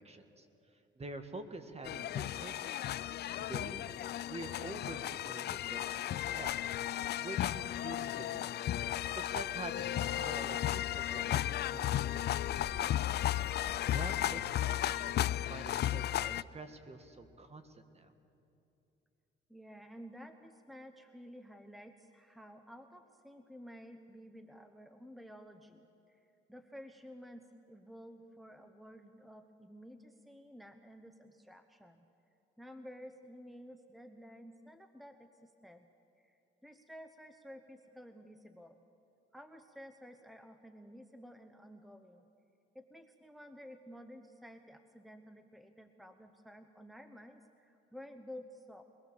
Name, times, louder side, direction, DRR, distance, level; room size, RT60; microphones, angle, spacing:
voice 1, 0.0-2.9 3.4-3.8 4.3-6.5 7.2-8.6 9.2-13.0 13.6-15.1 15.5-18.1, right 2 dB, 30° right, 7 dB, 1.7 m, -47 dB
sound 1, 1.8-16.4, left 12 dB, 55° left, 0.4 m, -35 dB
voice 2, 19.5-32.1 32.6-35.9 36.2-38.8 39.3-42.2 42.7-48.8, equal, ahead, 7 dB, 1.0 m, -52 dB
24.0 x 19.5 x 6.9 m, 2.8 s
cardioid pair, 90°, 20 cm